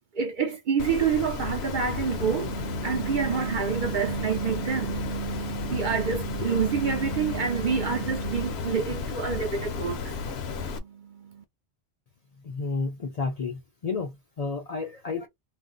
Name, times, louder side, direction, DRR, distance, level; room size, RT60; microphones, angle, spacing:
voice 1, 0.1-11.4, right 6 dB, 55° right, 0.6 m, -28 dB
Water, 0.8-10.8, left 5 dB, 70° left, 0.8 m, -33 dB
voice 2, 12.4-15.3, left 4 dB, 50° left, 0.5 m, -31 dB
2.5 x 2.0 x 3.6 m
omnidirectional pair, 1.1 m